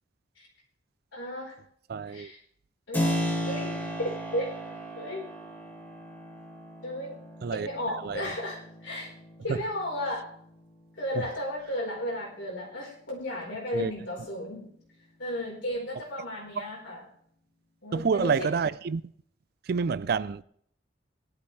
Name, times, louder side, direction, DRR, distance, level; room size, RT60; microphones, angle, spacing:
voice 1, 1.1-1.6 2.1-2.4 2.9-3.1 3.5-4.5 5.0-5.3 6.8-7.2 7.5-9.1 9.4-10.3 11.0-14.7 15.2-17.1 17.8-18.6, left 1 dB, 85° left, 4.3 m, -34 dB
voice 2, 1.9-2.3 7.4-7.7 8.0-8.2 9.5-9.6 13.7-13.9 17.9-19.0 19.7-20.4, right 5 dB, 55° right, 0.4 m, -28 dB
Keyboard (musical), 2.9-11.5, equal, 10° left, 2.0 m, -35 dB
18.0 x 11.5 x 3.2 m
head